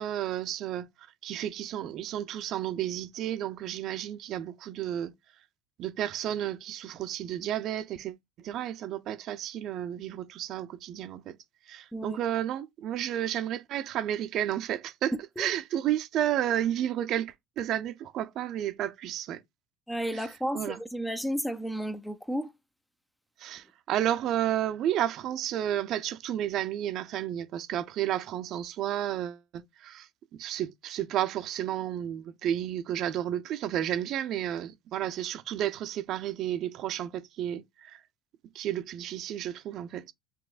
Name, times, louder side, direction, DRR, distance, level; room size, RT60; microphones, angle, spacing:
voice 1, 0.0-5.1 5.8-11.4 11.7-19.4 20.1-20.3 20.5-20.8 23.4-38.0 38.5-40.1, right 11 dB, 55° right, 0.6 m, -32 dB
voice 2, 19.9-22.5, equal, 5° left, 0.6 m, -32 dB
5.9 x 3.0 x 2.4 m
supercardioid pair, 105°, 0 cm